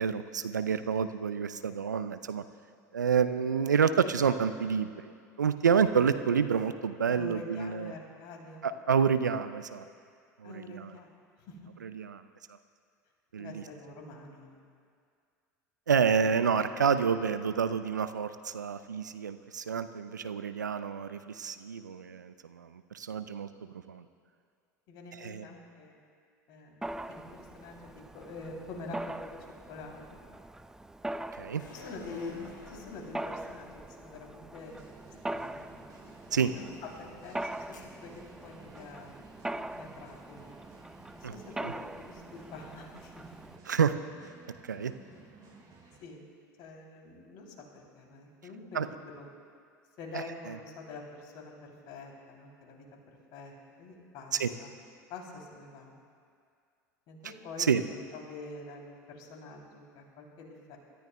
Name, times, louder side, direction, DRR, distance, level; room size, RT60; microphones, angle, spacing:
voice 1, 0.0-2.4 2.9-5.1 5.4-7.9 8.6-9.8 10.4-10.9 11.8-12.2 13.3-13.6 15.9-23.5 23.9-24.0 25.1-25.5 31.4-31.6 36.3-36.5 41.2-41.3 41.6-41.7 43.7-44.0 44.7-44.9 48.7-48.9 50.1-50.6 54.3-54.5 57.6-57.8, right 6 dB, 85° right, 12 dB, 0.5 m, -28 dB
voice 2, 7.1-8.7 10.4-11.1 11.4-11.6 13.4-14.6 24.9-25.9 26.5-26.8 27.1-29.3 29.7-30.2 31.7-33.7 34.0-34.8 35.2-35.7 36.4-36.7 37.0-39.2 39.8-40.5 41.1-43.1 45.4-45.5 46.0-46.2 46.6-49.3 50.0-52.9 53.3-53.5 53.8-54.7 55.1-55.9 57.1-60.8, left 3 dB, 50° left, 0 dB, 2.9 m, -46 dB
Mechanisms, 26.8-43.6, right 1 dB, 5° right, 0.3 m, -42 dB
sound 1, 31.6-35.1 37.7-37.8, left 4 dB, 80° left, 1.5 m, -52 dB
sound 2, 34.6-46.0, right 4 dB, 40° right, 3.6 m, -54 dB
26.5 x 13.5 x 2.2 m, 2.2 s
figure-of-eight pair, 75°, 10 cm